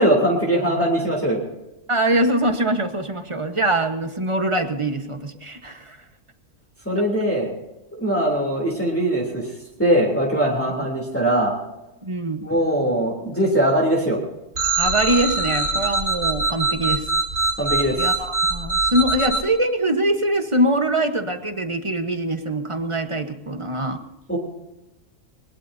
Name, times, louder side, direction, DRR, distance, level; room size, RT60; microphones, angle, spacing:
voice 1, 0.0-1.4 6.8-7.5 7.9-9.5 9.8-11.5 12.4-14.2 17.6-18.0 24.3-24.4, right 1 dB, 10° left, -2 dB, 3.3 m, -21 dB
voice 2, 1.9-6.0 12.0-12.4 14.8-17.1 18.0-24.0, right 1 dB, 25° right, 7 dB, 1.2 m, -23 dB
sound 1, 14.6-19.4, right 3 dB, 85° right, 3.1 m, -22 dB
22.0 x 20.5 x 2.8 m, 0.99 s
omnidirectional pair, 1.3 m